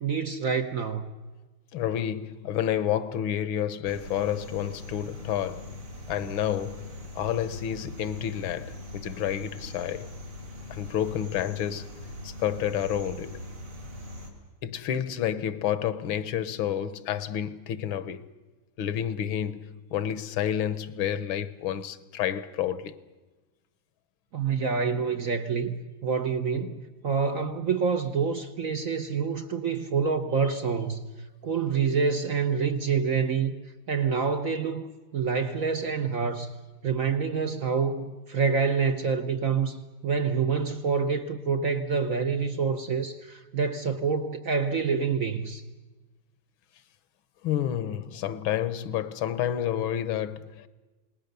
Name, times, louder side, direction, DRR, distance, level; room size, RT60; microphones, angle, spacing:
voice 1, 0.0-1.1 24.3-31.0 31.4-33.5 33.9-36.5 36.8-45.6, right 5 dB, 55° right, 1.0 m, -27 dB
voice 2, 1.7-5.7 6.1-6.9 7.1-10.1 10.7-11.9 12.2-13.4 14.6-18.3 18.8-22.9 47.4-50.7, left 10 dB, 70° left, 1.7 m, -30 dB
sound 1, 3.8-14.3, left 1 dB, 80° right, 4.3 m, -41 dB
28.0 x 19.5 x 6.8 m
omnidirectional pair, 2.4 m